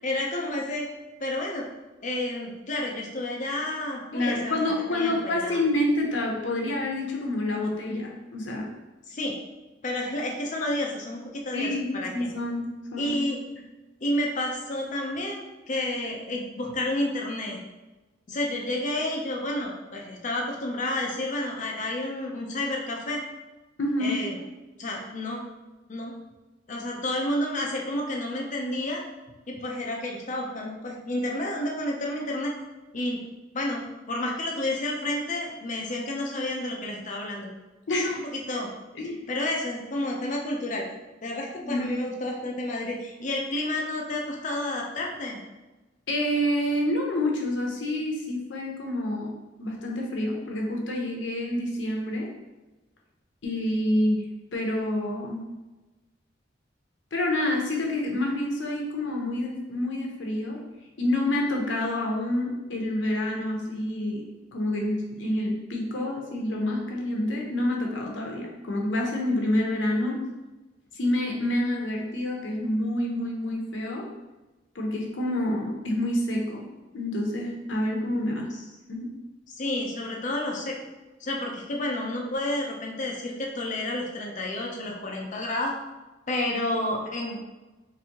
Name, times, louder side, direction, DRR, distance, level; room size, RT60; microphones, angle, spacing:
voice 1, 0.0-0.9 1.2-1.7 2.0-5.6 9.1-9.4 9.8-12.3 13.0-13.4 14.0-17.6 18.3-23.2 24.0-24.3 24.8-25.4 25.9-26.2 26.7-29.0 29.5-32.5 32.9-33.2 33.5-37.5 37.9-38.7 39.3-40.8 41.2-45.4 79.5-80.8 81.2-85.7 86.3-87.4, left 1 dB, 45° left, 0 dB, 0.6 m, -30 dB
voice 2, 4.1-8.7 11.5-13.2 23.8-24.2 37.9-38.2 38.9-39.3 41.6-41.9 46.1-49.3 49.6-52.3 53.4-55.5 57.1-60.6 61.0-64.2 64.5-70.2 70.9-74.1 74.7-76.7 76.9-78.5 78.9-79.1, left 1 dB, 85° left, 0 dB, 0.8 m, -28 dB
4.0 x 2.6 x 2.9 m, 1.1 s
head